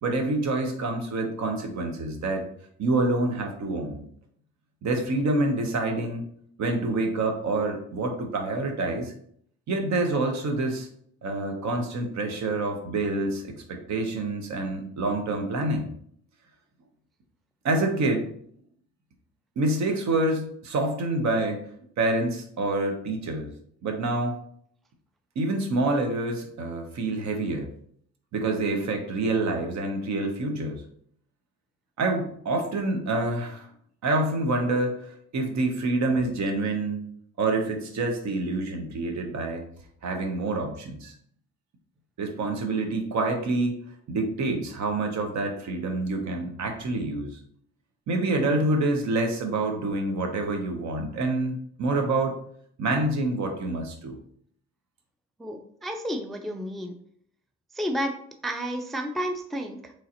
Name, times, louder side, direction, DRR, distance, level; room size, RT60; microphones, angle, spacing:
voice 1, 0.0-2.5 2.8-4.0 4.8-6.2 6.6-9.1 9.7-10.9 11.2-15.9 17.6-18.3 19.6-21.6 22.0-23.5 23.8-24.4 25.4-27.7 28.3-30.8 32.0-33.7 34.0-37.1 37.4-39.6 40.0-41.1 42.2-43.8 44.1-47.3 48.1-52.4 52.8-54.2, right 2 dB, 65° right, 4 dB, 0.8 m, -27 dB
voice 2, 55.4-57.0 57.7-58.2 58.4-59.9, equal, ahead, 5 dB, 0.3 m, -31 dB
3.7 x 3.1 x 2.8 m, 0.65 s
cardioid pair, 90°, 30 cm